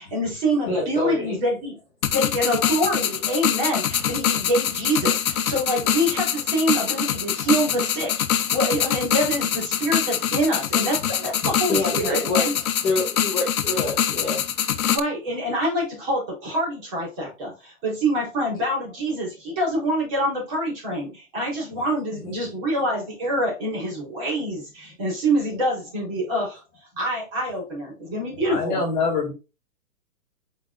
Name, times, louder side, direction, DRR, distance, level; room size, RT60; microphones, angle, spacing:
voice 1, 0.0-1.8 2.1-12.5 14.7-26.6 26.9-28.8, right 1 dB, 25° right, -4 dB, 3.7 m, -26 dB
voice 2, 0.6-1.4 11.7-14.4 22.1-22.3, left 2 dB, 10° left, -9 dB, 1.7 m, -27 dB
sound 1, 2.0-15.0, left 9 dB, 65° left, 0.9 m, -24 dB
voice 3, 28.4-29.3, left 4 dB, 30° left, -1 dB, 2.1 m, -24 dB
7.8 x 5.0 x 2.5 m, 0.29 s
hypercardioid pair, 170°, 44 cm